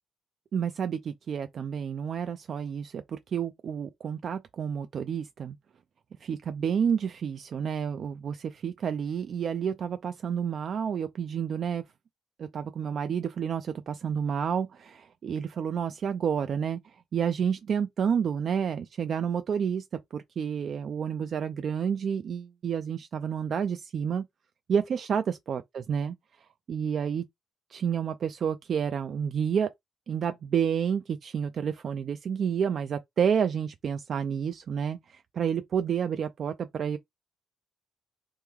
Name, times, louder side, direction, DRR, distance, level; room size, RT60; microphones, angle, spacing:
voice 1, 0.5-5.6 6.2-11.8 12.4-19.8 20.1-24.2 24.7-25.6 25.9-26.1 26.7-27.2 27.7-29.7 30.1-37.0, right 7 dB, 55° right, 0.4 m, -30 dB
3.1 x 2.2 x 3.6 m
cardioid pair, 90°, 0 cm